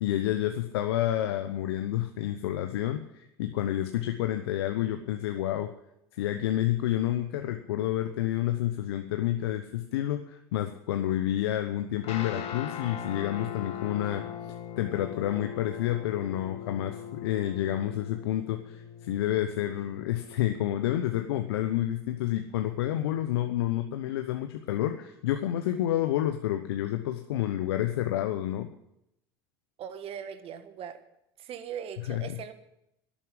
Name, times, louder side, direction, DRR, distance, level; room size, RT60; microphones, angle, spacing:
voice 1, 0.0-5.7 6.2-14.3 14.8-28.7 32.1-32.4, left 12 dB, 75° left, 6 dB, 0.9 m, -29 dB
Guitar, 12.0-23.5, left 9 dB, 50° left, 1.7 m, -41 dB
voice 2, 29.8-31.0 31.4-32.5, right 8 dB, 50° right, 10 dB, 1.5 m, -40 dB
11.5 x 8.8 x 10.0 m, 0.82 s
hypercardioid pair, 75°, 13 cm